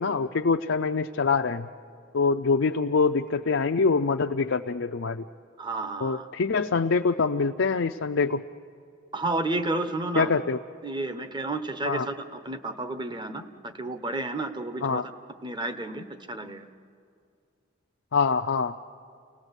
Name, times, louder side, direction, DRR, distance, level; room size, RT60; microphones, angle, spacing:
voice 1, 0.0-1.7 2.1-5.2 6.0-8.4 10.2-10.6 11.8-12.1 14.8-15.0 18.1-18.7, left 4 dB, 70° left, 4 dB, 0.5 m, -24 dB
voice 2, 5.6-6.3 9.1-10.3 10.8-15.0 15.4-16.7, right 2 dB, 25° right, 9 dB, 1.1 m, -31 dB
29.5 x 19.5 x 8.1 m, 2.3 s
head